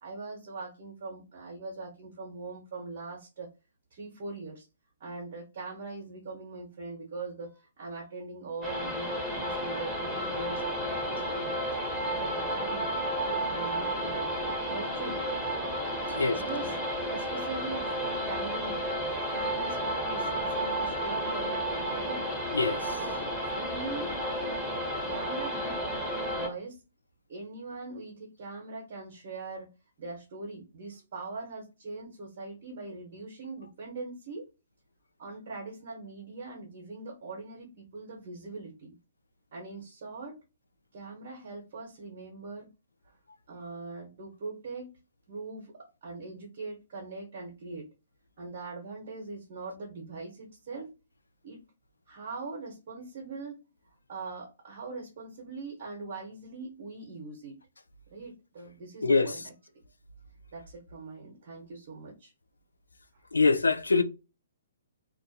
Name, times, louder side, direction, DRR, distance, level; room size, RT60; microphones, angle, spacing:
voice 1, 0.0-3.5 3.9-4.7 5.0-11.6 12.0-15.2 16.0-16.8 17.1-18.8 19.3-22.3 22.9-24.1 24.4-24.6 25.1-26.8 27.3-29.7 30.0-34.5 35.2-38.9 39.5-40.4 40.9-42.7 43.0-43.2 43.5-45.0 45.3-47.9 48.4-50.9 51.4-51.6 52.1-53.6 54.1-57.6 58.1-59.5 60.5-62.3, right 3 dB, 50° right, 0.8 m, -41 dB
sound 1, 8.6-26.5, equal, ahead, 0.9 m, -32 dB
voice 2, 22.5-23.0 59.0-59.3 63.3-64.0, left 4 dB, 85° left, 0.3 m, -24 dB
2.5 x 2.3 x 2.6 m
hypercardioid pair, 130°, 0 cm